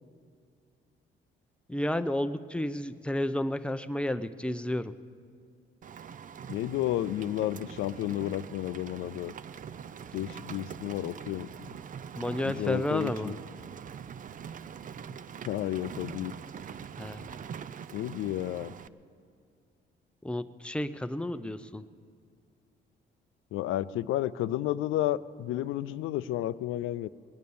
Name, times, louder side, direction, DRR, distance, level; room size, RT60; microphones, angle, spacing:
voice 1, 1.7-5.0 12.1-13.3 17.0-17.3 20.2-21.8, left 1 dB, 5° left, 11 dB, 0.6 m, -31 dB
Rain, 5.8-18.9, right 7 dB, 40° right, 0.5 m, -43 dB
voice 2, 6.5-9.3 10.1-11.5 12.4-13.4 15.4-16.3 17.9-18.7 23.5-27.1, left 13 dB, 85° left, 15 dB, 0.5 m, -31 dB
20.5 x 9.4 x 7.0 m, 2.3 s
cardioid pair, 90°, 20 cm